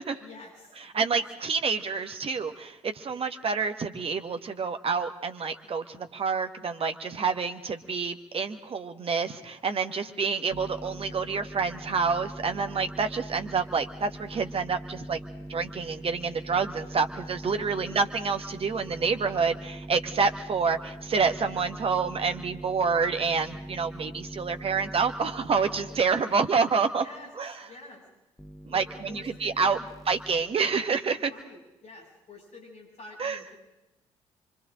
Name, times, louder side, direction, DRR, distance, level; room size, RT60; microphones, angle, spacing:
voice 1, 0.2-1.2 10.0-10.4 17.4-18.0 25.9-27.3 27.6-28.0 28.7-29.9 31.1-33.5, left 2 dB, 45° left, -2 dB, 8.0 m, -49 dB
voice 2, 0.9-15.2 15.5-27.0 27.4-27.5 28.7-29.8 30.1-31.3 33.2-33.4, right 5 dB, 35° right, 7 dB, 1.6 m, -28 dB
sound 1, 10.5-26.0 28.4-30.4, right 1 dB, ahead, 1.0 m, -42 dB
29.0 x 24.5 x 3.8 m, 0.95 s
figure-of-eight pair, 45°, 16 cm